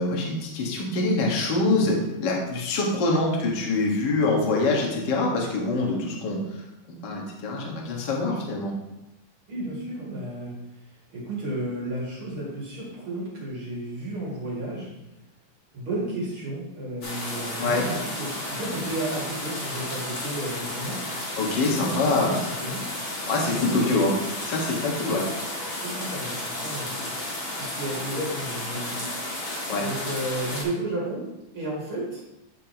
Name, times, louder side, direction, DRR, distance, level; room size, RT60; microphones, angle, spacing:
voice 1, 0.0-6.4 6.9-8.7 17.6-17.9 21.4-22.4 23.3-24.1 24.4-25.2 29.7-29.8, left 2 dB, 80° left, -2 dB, 0.9 m, -25 dB
voice 2, 9.5-10.5 11.1-14.9 15.7-21.1 21.6-22.9 23.5-24.2 25.0-25.2 25.8-27.0 27.6-32.2, right 1 dB, 40° right, -5 dB, 2.4 m, -33 dB
sound 1, 17.0-30.6, left 1 dB, 45° left, 1.8 m, -33 dB
9.6 x 6.8 x 3.0 m, 0.92 s
omnidirectional pair, 4.6 m